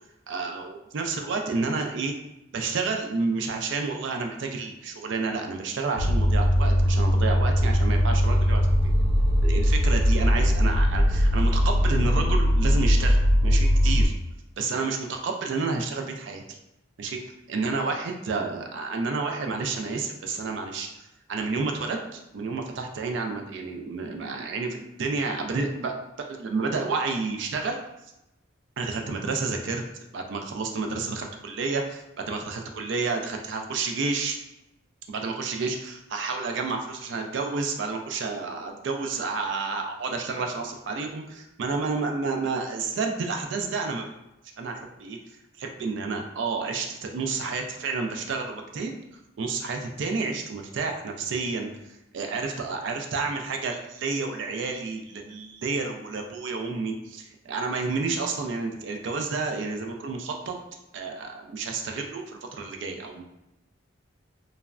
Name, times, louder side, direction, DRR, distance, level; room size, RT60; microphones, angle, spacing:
voice 1, 0.3-2.1 2.5-8.6 9.4-14.1 14.6-16.4 17.0-17.2 17.5-27.8 28.8-29.8 30.1-34.4 35.1-44.1 44.6-48.9 49.4-60.6 60.9-63.2, right 4 dB, 60° right, 3 dB, 0.3 m, -30 dB
sound 1, 6.0-14.1, equal, 10° left, 0.6 m, -20 dB
3.2 x 2.0 x 2.4 m, 0.88 s
head